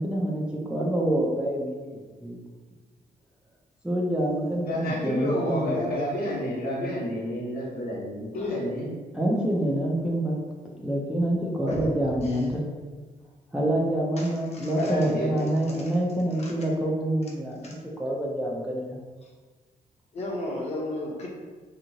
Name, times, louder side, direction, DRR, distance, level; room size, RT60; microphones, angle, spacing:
voice 1, 0.0-2.4 3.8-5.8 9.1-10.4 10.8-12.7 13.5-19.0, right 1 dB, 5° right, -3 dB, 0.4 m, -27 dB
voice 2, 4.7-8.9 14.8-15.5, left 1 dB, 75° left, -5 dB, 0.9 m, -30 dB
voice 3, 14.2-15.1 15.7-15.9 16.4-16.5 17.6-17.7 19.2-19.3 20.1-21.3, left 1 dB, 45° left, -2 dB, 0.7 m, -36 dB
2.9 x 2.7 x 2.7 m, 1.4 s
wide cardioid pair, 155°, 16 cm